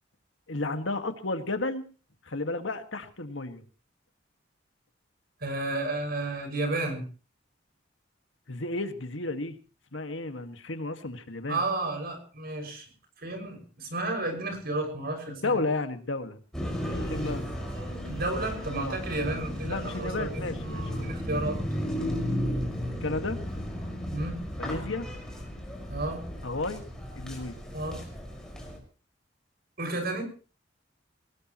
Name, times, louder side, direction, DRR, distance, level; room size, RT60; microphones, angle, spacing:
voice 1, 0.5-1.8 2.3-3.6 8.5-9.6 9.9-11.6 15.3-16.4 17.1-17.4 18.8-19.0 19.7-21.1 22.0-22.1 23.0-23.4 24.6-25.1 26.4-26.8 27.2-27.6, left 2 dB, 85° left, 8 dB, 1.9 m, -32 dB
voice 2, 5.4-7.1 11.5-12.8 13.2-15.6 18.0-20.4 20.9-21.6 24.1-24.4 25.9-26.3 27.7-28.0 29.8-30.2, right 2 dB, 55° right, 4 dB, 6.3 m, -32 dB
sound 1, 16.5-28.8, equal, 5° left, 5.5 m, -34 dB
Male singing, 16.9-19.3 19.6-21.7, right 3 dB, 75° right, 6.1 m, -49 dB
22.5 x 19.5 x 3.1 m, 0.37 s
head